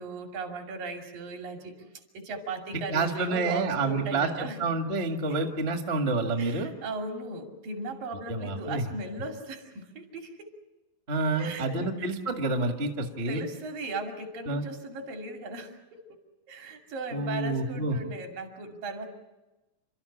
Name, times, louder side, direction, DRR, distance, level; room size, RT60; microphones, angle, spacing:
voice 1, 0.0-1.9 2.1-4.6 5.3-5.4 6.4-10.5 11.4-12.1 13.3-16.2 16.5-19.1, right 2 dB, 70° right, 3 dB, 4.3 m, -37 dB
voice 2, 2.9-6.7 8.3-8.9 11.1-13.4 14.5-14.6 17.1-18.0, right 3 dB, 25° right, 4 dB, 1.3 m, -28 dB
29.0 x 13.0 x 9.9 m, 1.1 s
omnidirectional pair, 4.2 m